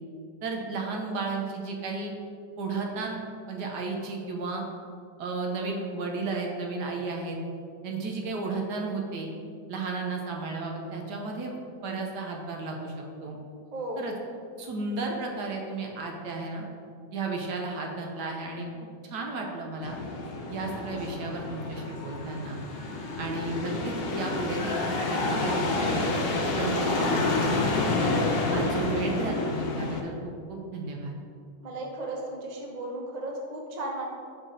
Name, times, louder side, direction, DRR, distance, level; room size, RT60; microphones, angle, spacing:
voice 1, 0.4-2.1 2.6-3.2 3.5-4.6 5.2-7.4 7.8-9.3 9.7-11.6 11.8-12.9 13.2-13.4 14.0-14.1 14.6-16.6 17.1-18.7 19.0-20.0 20.5-22.6 23.2-26.1 26.5-27.3 28.5-31.1, right 3 dB, 70° right, 1 dB, 1.3 m, -33 dB
voice 2, 13.7-14.1 31.6-34.1, right 1 dB, 45° right, -1 dB, 0.5 m, -35 dB
sound 1, 19.8-30.0, left 2 dB, 90° left, 0.5 m, -29 dB
5.9 x 5.0 x 3.8 m, 2.4 s
omnidirectional pair, 1.9 m